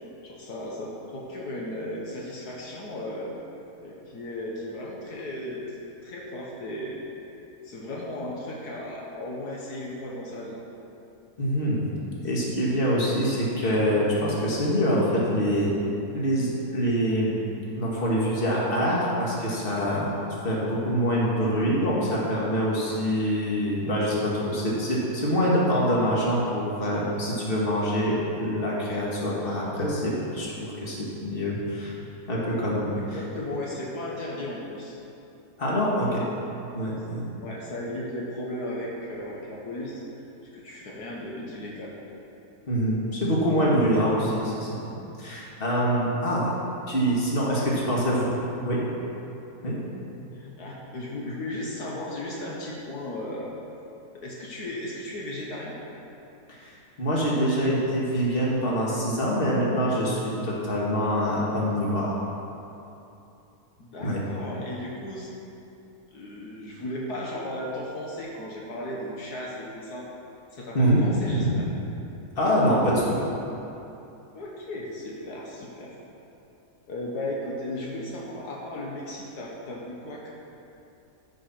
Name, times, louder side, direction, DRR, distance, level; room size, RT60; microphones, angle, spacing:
voice 1, 0.2-3.3 3.8-5.6 6.0-7.0 7.6-10.6 32.9-35.0 35.7-36.2 37.4-40.0 40.5-42.0 47.6-48.0 50.3-53.5 54.1-55.8 63.8-65.3 66.1-70.1 70.5-71.7 74.3-76.0 76.9-80.3, left 1 dB, 75° left, -3 dB, 1.8 m, -35 dB
voice 2, 11.4-11.9 12.2-15.7 16.1-17.4 17.7-20.2 20.4-31.9 32.3-33.2 35.6-36.2 36.7-37.2 42.7-46.5 46.9-48.3 48.6-48.8 49.6-49.8 56.5-56.7 57.0-62.3 64.0-64.2 70.7-71.0 71.3-71.6 72.4-73.1, equal, 35° left, -5 dB, 2.0 m, -25 dB
13.0 x 5.5 x 5.9 m, 2.9 s
omnidirectional pair, 1.7 m